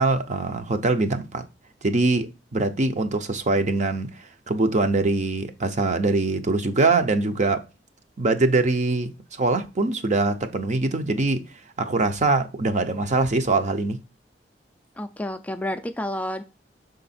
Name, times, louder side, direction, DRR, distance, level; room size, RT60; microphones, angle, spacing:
voice 1, 0.0-1.4 1.8-7.6 8.2-9.1 9.4-11.4 11.8-14.0, right 3 dB, 45° right, 0.6 m, -23 dB
voice 2, 15.0-16.4, left 1 dB, 10° left, 0.3 m, -30 dB
6.1 x 3.9 x 4.1 m
head